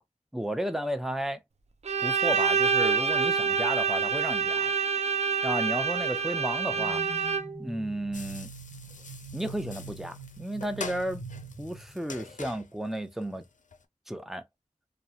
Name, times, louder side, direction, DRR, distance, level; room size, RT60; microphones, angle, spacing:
voice 1, 0.3-1.4 2.0-4.7 5.4-7.0 7.6-8.5 9.3-11.2 11.6-13.4 14.1-14.4, right 1 dB, ahead, 0.5 m, -33 dB
Bowed string instrument, 1.8-7.7, right 5 dB, 55° right, 0.4 m, -27 dB
sound 1, 6.7-12.3, right 3 dB, 30° left, 1.0 m, -44 dB
sound 2, 8.1-13.8, left 5 dB, 70° left, 0.5 m, -45 dB
2.8 x 2.1 x 2.4 m
wide cardioid pair, 55°, 13 cm